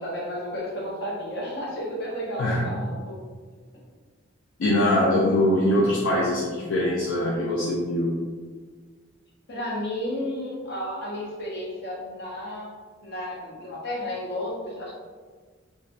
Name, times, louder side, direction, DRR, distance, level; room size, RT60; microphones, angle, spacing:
voice 1, 0.0-3.2 9.5-12.7 13.0-14.9, left 1 dB, 60° left, -5 dB, 0.8 m, -32 dB
voice 2, 2.4-2.8 4.6-8.1, left 1 dB, 75° left, -4 dB, 0.4 m, -23 dB
3.0 x 2.2 x 2.5 m, 1.5 s
head